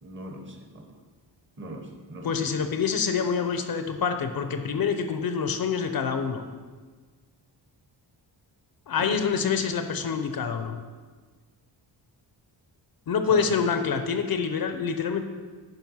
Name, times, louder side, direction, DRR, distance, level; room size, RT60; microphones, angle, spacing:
voice 1, 0.0-1.0 1.6-2.5 9.0-9.3 13.3-13.5, right 1 dB, 25° right, 3 dB, 1.2 m, -40 dB
voice 2, 2.2-6.4 8.9-10.8 13.1-15.2, left 6 dB, 55° left, 8 dB, 0.7 m, -26 dB
9.3 x 5.3 x 5.5 m, 1.5 s
wide cardioid pair, 135°, 44 cm